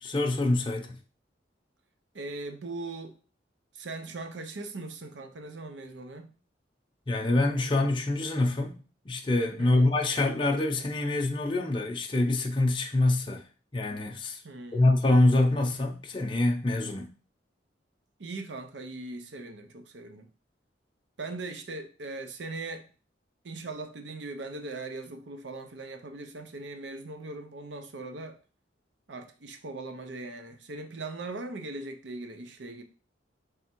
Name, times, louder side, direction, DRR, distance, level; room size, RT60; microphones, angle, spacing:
voice 1, 0.0-1.0 7.1-13.4 13.7-14.4 14.7-17.1, left 2 dB, 25° left, 0.6 m, -25 dB
voice 2, 2.1-3.2 3.7-6.3 9.6-9.9 14.4-14.9 18.2-20.3 21.2-22.8 23.4-28.4 29.1-32.8, right 2 dB, 70° right, 0.7 m, -40 dB
3.5 x 3.3 x 4.4 m
head